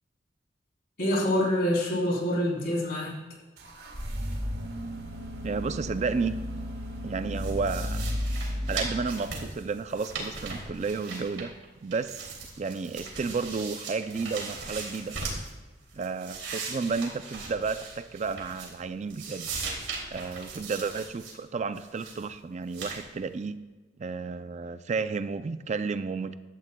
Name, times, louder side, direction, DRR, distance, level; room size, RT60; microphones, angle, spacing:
voice 1, 1.0-3.1, left 1 dB, 60° left, -3 dB, 3.5 m, -26 dB
sound 1, 3.6-9.5, equal, 60° right, 1.6 m, -34 dB
voice 2, 5.4-6.4 7.0-8.1 8.7-11.5 11.8-12.3 12.6-15.2 15.9-19.5 20.1-23.6 24.0-26.3, right 4 dB, 40° right, 12 dB, 0.4 m, -32 dB
sound 2, 7.4-11.7 11.9-15.5 15.9-18.8 19.1-21.3 21.8-22.2 22.7-23.0, right 4 dB, 85° right, 2.7 m, -38 dB
16.0 x 11.5 x 2.2 m, 1.2 s
head